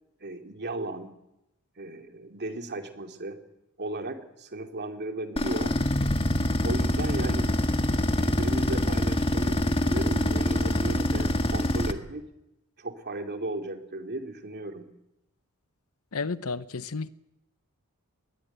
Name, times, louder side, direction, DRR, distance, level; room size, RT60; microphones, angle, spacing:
voice 1, 0.2-1.2 1.8-3.4 3.8-5.8 6.6-7.5 8.1-12.2 12.8-14.9, right 2 dB, 50° right, 2.8 m, -35 dB
sound 1, 5.4-11.9, left 1 dB, 25° left, 1.6 m, -25 dB
voice 2, 16.1-17.1, left 4 dB, 70° left, 0.9 m, -32 dB
22.0 x 20.0 x 9.3 m
head